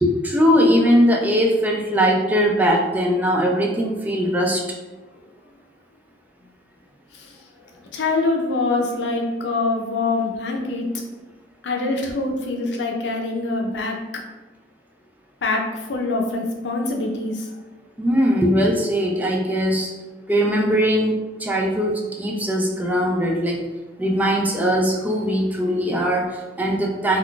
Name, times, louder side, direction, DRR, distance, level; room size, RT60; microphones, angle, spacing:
voice 1, 0.0-4.6 18.0-19.9 20.3-21.1 21.4-23.6 24.0-27.2, equal, 10° right, -1 dB, 0.3 m, -20 dB
voice 2, 7.8-10.9 11.6-14.2 15.4-17.5, left 3 dB, 75° left, 1 dB, 0.5 m, -24 dB
2.4 x 2.3 x 3.7 m, 1.2 s
head